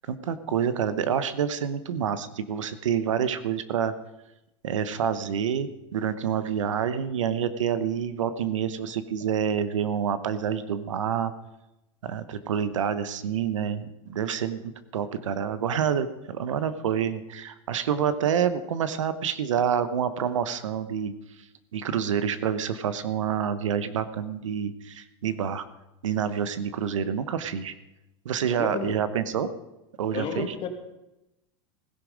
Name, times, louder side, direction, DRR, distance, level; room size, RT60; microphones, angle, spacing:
voice 1, 0.1-3.9 4.6-11.3 12.0-21.1 21.7-25.7 26.0-27.7 28.2-29.5 30.0-30.5, right 8 dB, 90° right, 13 dB, 1.0 m, -27 dB
voice 2, 28.5-28.9 30.1-30.7, left 7 dB, 35° left, 5 dB, 2.3 m, -32 dB
16.5 x 11.0 x 5.1 m, 0.93 s
hypercardioid pair, 115°, 16 cm